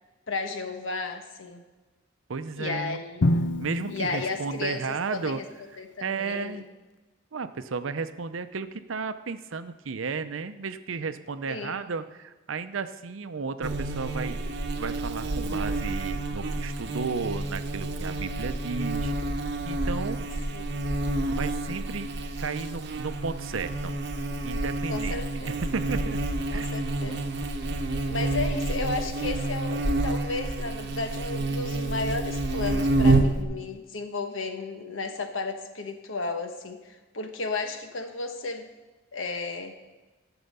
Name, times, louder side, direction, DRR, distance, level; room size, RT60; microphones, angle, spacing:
voice 1, 0.3-1.6 2.6-3.4 3.9-5.4 5.8-6.6 11.5-11.8 20.5-20.8 24.9-25.6 26.5-27.2 28.1-38.7 39.1-39.8, left 3 dB, 80° left, 6 dB, 1.1 m, -33 dB
voice 2, 2.3-3.0 3.6-5.4 6.0-6.7 7.3-19.1 19.6-20.3 21.3-22.1 22.4-23.9 24.4-25.2 25.5-26.2 26.5-26.7, right 4 dB, 80° right, 11 dB, 0.6 m, -33 dB
Drum, 3.2-5.2, left 1 dB, 60° left, 0.5 m, -28 dB
Buzz, 13.6-33.4, right 2 dB, 55° right, 0.9 m, -29 dB
13.0 x 7.0 x 5.4 m, 1.2 s
head